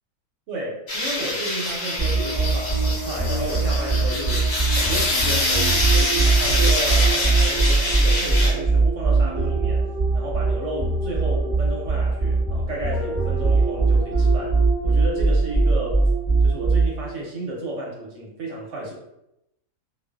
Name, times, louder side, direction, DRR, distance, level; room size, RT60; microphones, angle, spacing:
voice 1, 0.5-4.5 4.7-9.9 10.1-16.0 16.4-18.9, right 1 dB, 65° right, -2 dB, 0.9 m, -32 dB
sound 1, 0.9-8.5, left 2 dB, 70° left, 1.3 m, -25 dB
sound 2, 2.0-17.1, right 3 dB, 20° left, 0.9 m, -21 dB
2.4 x 2.3 x 2.3 m, 0.85 s
omnidirectional pair, 1.5 m